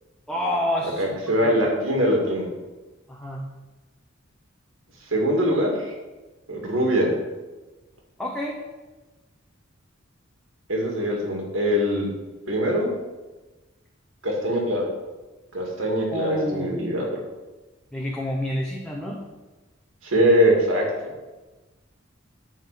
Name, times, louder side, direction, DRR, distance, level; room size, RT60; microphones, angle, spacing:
voice 1, 0.3-1.6 3.1-3.4 8.2-8.6 16.1-16.7 17.9-19.2, left 1 dB, 5° left, -2 dB, 1.0 m, -28 dB
voice 2, 1.0-2.5 5.1-5.9 6.5-7.1 10.7-12.1 12.5-12.9 14.2-14.9 15.5-17.2 20.0-20.9, equal, 75° right, -1 dB, 2.3 m, -22 dB
11.0 x 4.0 x 7.4 m, 1.2 s
head